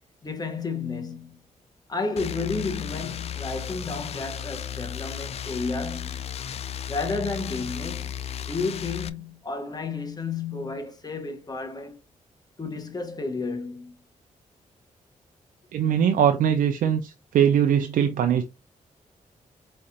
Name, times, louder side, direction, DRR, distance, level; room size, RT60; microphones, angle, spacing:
voice 1, 0.2-1.4 1.9-6.2 6.9-8.1 8.4-12.0 12.6-13.9, left 4 dB, 30° left, 1.1 m, -32 dB
sound 1, 2.2-9.1, left 9 dB, 50° left, 0.4 m, -35 dB
voice 2, 15.7-18.4, right 9 dB, 85° right, 0.5 m, -21 dB
4.7 x 3.2 x 2.8 m
cardioid pair, 100°, 14 cm